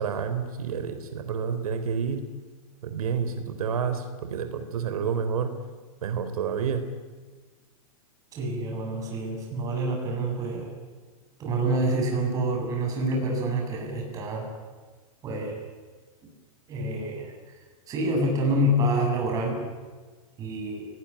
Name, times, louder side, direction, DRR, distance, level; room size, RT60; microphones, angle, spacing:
voice 1, 0.0-2.2 2.8-5.5 6.0-6.8, right 6 dB, 85° right, 8 dB, 3.8 m, -29 dB
voice 2, 8.3-10.7 11.4-14.5 15.2-15.6 16.7-17.3 17.9-19.6 20.4-20.9, right 1 dB, 20° right, 0 dB, 7.5 m, -27 dB
30.0 x 19.5 x 10.0 m, 1.4 s
supercardioid pair, 170°, 18 cm